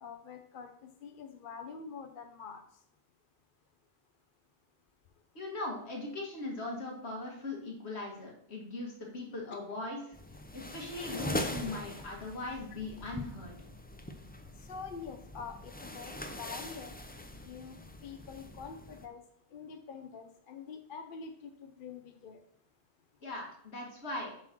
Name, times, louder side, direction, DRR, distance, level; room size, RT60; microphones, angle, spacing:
voice 1, 0.0-2.6 14.6-17.8 18.0-19.2 19.5-22.4, left 5 dB, 55° left, 5 dB, 0.8 m, -46 dB
voice 2, 5.3-10.1 10.5-13.6 23.2-24.3, left 2 dB, 75° left, -1 dB, 2.1 m, -39 dB
sound 1, 10.1-19.1, left 1 dB, 15° left, 0.4 m, -42 dB
7.3 x 4.5 x 6.1 m, 0.70 s
omnidirectional pair, 1.1 m